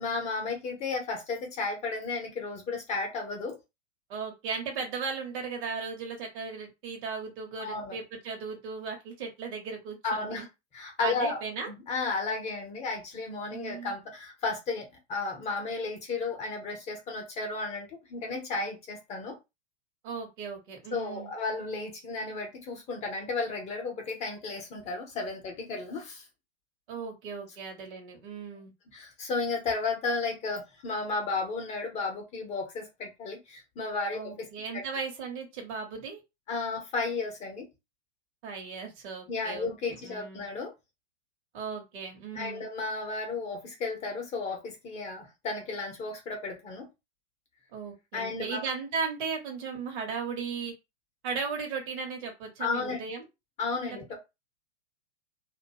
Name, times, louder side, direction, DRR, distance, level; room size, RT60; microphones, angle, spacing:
voice 1, 0.0-3.6 7.6-8.0 10.0-10.5 10.7-11.4 11.7-19.4 20.9-26.2 28.9-34.5 34.7-34.8 36.5-37.7 39.3-40.7 42.3-46.9 48.1-48.6 52.6-53.0 53.6-54.2, left 3 dB, 20° left, 2 dB, 0.5 m, -33 dB
voice 2, 4.1-10.5 11.0-11.7 13.5-13.9 20.0-21.3 26.9-28.7 34.1-36.2 38.4-40.4 41.5-42.7 47.7-50.7 51.2-53.3 53.9-54.2, right 5 dB, 50° right, 1 dB, 0.9 m, -36 dB
2.5 x 2.2 x 2.6 m, 0.24 s
figure-of-eight pair, 105°, 34 cm